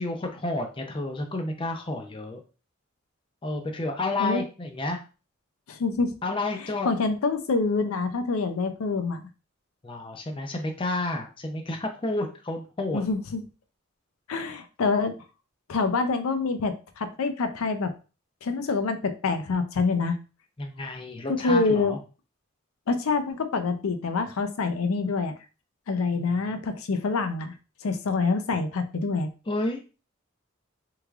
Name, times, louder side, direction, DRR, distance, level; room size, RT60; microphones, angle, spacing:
voice 1, 0.0-2.4 3.4-5.0 6.2-6.9 9.8-13.0 20.6-22.0 26.2-26.3 29.5-29.8, left 2 dB, 25° left, 4 dB, 0.5 m, -30 dB
voice 2, 5.7-6.1 6.6-9.2 12.9-13.4 14.3-15.2 15.7-17.9 18.4-20.2 21.3-21.9 22.9-25.3 25.9-27.5 27.8-29.3, left 4 dB, 85° left, 8 dB, 0.5 m, -26 dB
3.5 x 3.2 x 2.3 m, 0.33 s
head